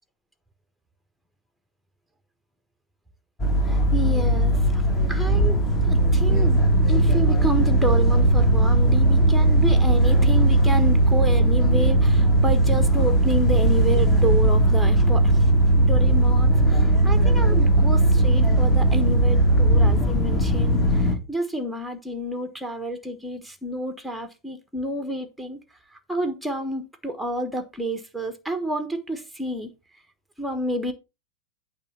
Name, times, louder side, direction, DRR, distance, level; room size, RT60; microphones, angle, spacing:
sound 1, 3.4-21.2, right 1 dB, 20° left, 2.1 m, -18 dB
voice 1, 3.6-4.8 5.1-6.6 6.9-15.5 15.8-25.6 26.1-29.7 30.4-30.9, right 1 dB, ahead, 1.3 m, -29 dB
8.8 x 3.6 x 6.9 m
figure-of-eight pair, 90°, 0 cm